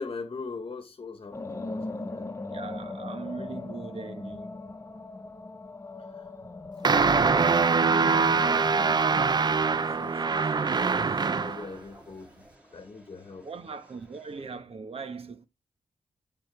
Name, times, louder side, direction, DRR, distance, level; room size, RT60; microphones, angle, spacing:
voice 1, 0.0-2.3 6.1-6.3 6.8-12.4 12.7-13.5, left 4 dB, 45° left, 1.2 m, -42 dB
sound 1, 1.3-11.5, left 2 dB, 25° left, 1.0 m, -39 dB
voice 2, 2.5-4.5 13.4-15.5, right 4 dB, 60° right, 1.4 m, -40 dB
sound 2, 6.8-11.7, right 5 dB, 40° right, 0.5 m, -23 dB
sound 3, 9.5-14.5, equal, 10° right, 4.0 m, -54 dB
11.5 x 4.1 x 3.3 m
cardioid pair, 70°, 11 cm